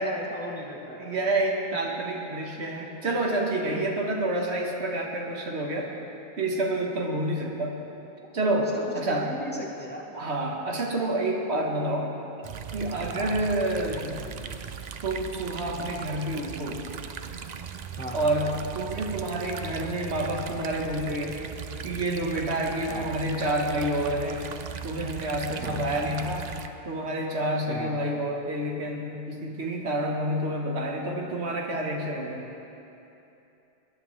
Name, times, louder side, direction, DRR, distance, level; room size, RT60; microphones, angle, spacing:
voice 1, 0.0-1.1 3.7-3.8 8.5-10.0 13.1-13.4 18.0-18.3 22.9-23.1 25.6-25.8 27.7-27.9, equal, 10° left, -1 dB, 1.0 m, -37 dB
voice 2, 1.0-5.9 6.4-7.8 8.3-8.7 8.9-9.3 10.1-12.1 12.7-14.3 15.0-16.8 18.1-21.4 21.8-24.5 24.8-26.5 26.9-32.4, right 1 dB, 85° right, 0 dB, 1.6 m, -28 dB
sound 1, 12.4-26.7, right 7 dB, 55° right, 0.5 m, -38 dB
19.5 x 11.0 x 3.2 m, 2.9 s
omnidirectional pair, 1.1 m